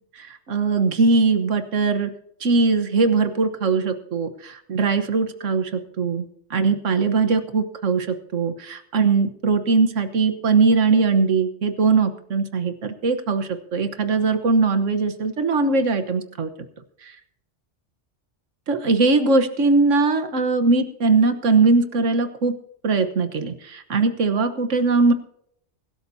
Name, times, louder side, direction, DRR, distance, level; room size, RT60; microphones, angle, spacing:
voice 1, 0.2-2.1 2.4-6.2 6.5-16.5 17.0-17.1 18.7-22.5 22.8-25.1, right 4 dB, 90° right, 8 dB, 1.5 m, -20 dB
23.0 x 12.5 x 2.7 m, 0.71 s
omnidirectional pair, 1.2 m